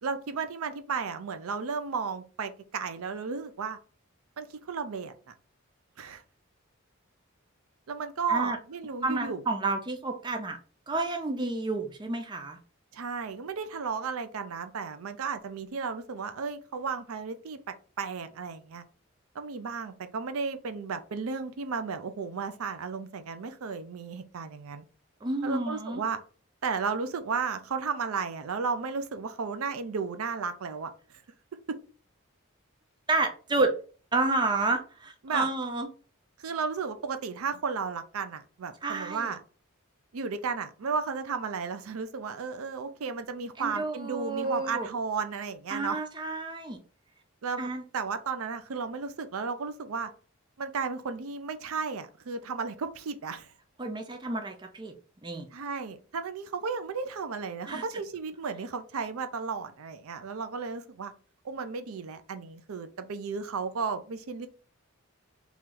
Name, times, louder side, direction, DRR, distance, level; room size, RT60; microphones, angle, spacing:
voice 1, 0.0-3.8 4.4-5.3 6.0-6.2 7.9-9.4 12.9-17.6 18.0-18.8 19.3-24.8 25.4-26.2 26.6-30.9 31.7-31.8 35.2-35.5 36.4-39.4 40.1-46.0 47.4-47.7 47.9-50.1 50.6-53.5 55.5-61.1 61.4-64.5, right 5 dB, 75° right, 10 dB, 0.5 m, -34 dB
voice 2, 9.0-10.6 10.9-12.6 25.2-26.0 33.1-33.8 34.1-35.9 38.8-39.3 43.6-44.9 45.7-46.8 47.6-47.8 53.8-54.9 55.2-55.5 57.7-57.8, right 2 dB, 20° right, 4 dB, 0.4 m, -30 dB
3.1 x 3.0 x 3.7 m, 0.38 s
head